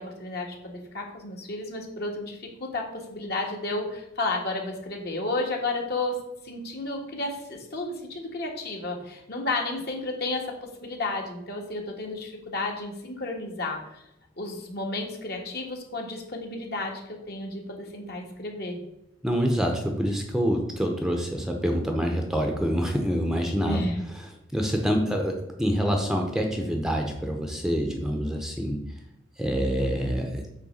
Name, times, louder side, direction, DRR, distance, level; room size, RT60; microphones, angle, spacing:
voice 1, 0.0-6.2 6.4-14.0 14.4-18.8 23.6-24.0, left 2 dB, 55° left, 0 dB, 1.6 m, -32 dB
voice 2, 19.2-23.8 24.5-28.8 29.4-30.4, equal, 5° right, 2 dB, 0.7 m, -26 dB
8.6 x 3.3 x 6.4 m, 0.86 s
head